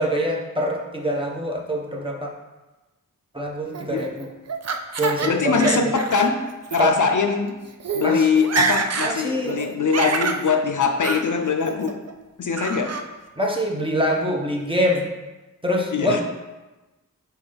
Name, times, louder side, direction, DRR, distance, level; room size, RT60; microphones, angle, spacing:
voice 1, 0.0-2.3 3.3-4.3 5.0-5.9 6.8-7.0 8.0-8.3 9.0-9.6 13.4-15.1 15.6-16.2, equal, 15° right, -1 dB, 1.0 m, -24 dB
Laughter, 3.7-5.3 5.6-6.3 6.6-6.8 7.5-7.6 7.8-8.1 8.4-9.1 9.5-10.4 11.0-11.2 11.6-12.1 12.6-13.0, right 4 dB, 50° right, 0.5 m, -26 dB
voice 2, 5.2-6.4 6.7-7.5 7.9-11.9 12.4-12.9 15.9-16.2, left 5 dB, 65° left, 6 dB, 0.6 m, -22 dB
5.9 x 4.3 x 3.9 m, 1.1 s
wide cardioid pair, 70°, 34 cm